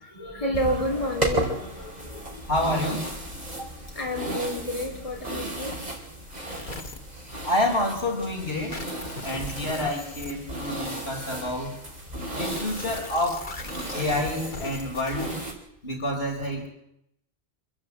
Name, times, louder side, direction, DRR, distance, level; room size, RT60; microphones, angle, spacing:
voice 1, 0.1-2.5 3.9-5.8 10.7-11.1, equal, 30° left, 0 dB, 4.3 m, -31 dB
sound 1, 0.5-15.5, right 1 dB, 40° right, 4.7 m, -35 dB
voice 2, 2.5-3.1 3.6-3.7 7.4-8.8 9.2-11.7 12.3-13.5 13.9-15.3 15.8-16.7, left 1 dB, 65° left, 1 dB, 5.0 m, -28 dB
sound 2, 6.5-7.0 8.7-10.3 12.4-15.3, left 2 dB, 45° left, 1.8 m, -38 dB
27.0 x 13.5 x 8.5 m, 0.77 s
omnidirectional pair, 1.1 m